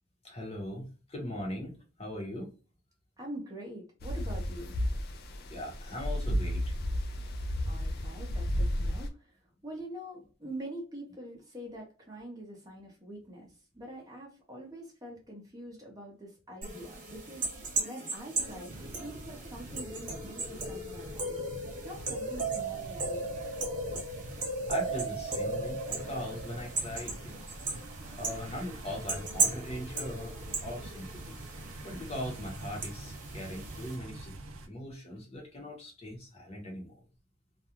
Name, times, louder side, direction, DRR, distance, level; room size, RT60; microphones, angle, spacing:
voice 1, 0.2-2.5 5.5-6.7 24.7-27.3 28.1-31.4 31.8-34.3 34.6-37.0, left 1 dB, 30° left, 0 dB, 0.8 m, -40 dB
voice 2, 3.2-4.7 7.6-9.4 9.6-17.4 17.8-21.4 21.8-23.3, right 1 dB, 15° right, -1 dB, 0.7 m, -45 dB
sound 1, 4.0-9.1, equal, 45° left, 0.4 m, -32 dB
sound 2, 16.6-34.0, right 3 dB, 35° right, 0.9 m, -36 dB
sound 3, 18.7-34.7, right 1 dB, 70° right, 0.5 m, -46 dB
2.4 x 2.3 x 2.8 m, 0.37 s
head